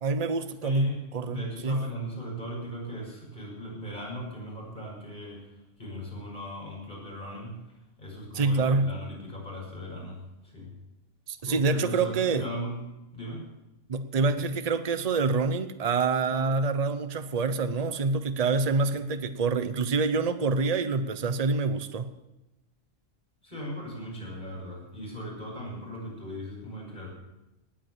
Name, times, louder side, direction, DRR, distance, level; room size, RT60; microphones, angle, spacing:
voice 1, 0.0-1.9 8.3-8.9 11.3-12.4 13.9-22.1, right 4 dB, 35° right, 11 dB, 0.9 m, -26 dB
voice 2, 0.6-7.6 8.0-10.7 11.4-12.8 13.1-13.5 23.4-27.1, equal, 35° left, -3 dB, 6.5 m, -38 dB
19.0 x 8.9 x 7.4 m, 0.96 s
omnidirectional pair, 1.3 m